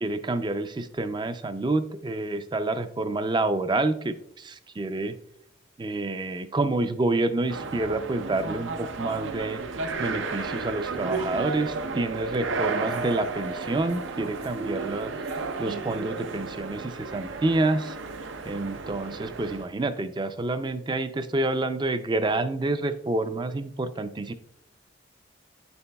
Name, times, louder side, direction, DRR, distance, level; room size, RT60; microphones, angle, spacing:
voice 1, 0.0-5.1 5.8-9.6 10.0-15.1 15.6-18.0 18.5-24.3, right 2 dB, 25° right, 11 dB, 0.3 m, -28 dB
sound 1, 7.5-19.7, right 4 dB, 85° right, 0.6 m, -33 dB
9.3 x 6.8 x 2.2 m, 0.72 s
head